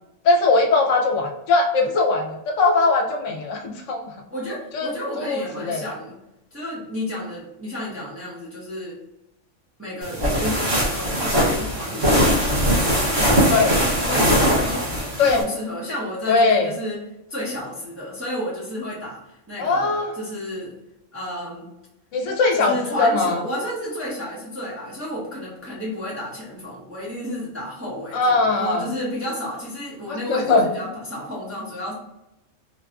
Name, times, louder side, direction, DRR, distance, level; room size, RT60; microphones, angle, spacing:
voice 1, 0.2-4.1 4.7-4.9 5.2-5.9 13.5-13.8 15.2-15.4 16.3-16.7 19.6-20.1 22.1-23.4 28.1-28.8 30.1-30.6, left 3 dB, 80° left, 2 dB, 0.9 m, -20 dB
voice 2, 4.3-6.2 6.5-9.0 9.8-13.2 13.5-17.0 17.3-20.8 21.1-21.7 22.5-31.9, equal, 15° right, -7 dB, 0.5 m, -32 dB
sound 1, 10.0-15.4, equal, 80° right, 1.3 m, -20 dB
3.9 x 2.4 x 2.3 m, 0.90 s
omnidirectional pair, 1.3 m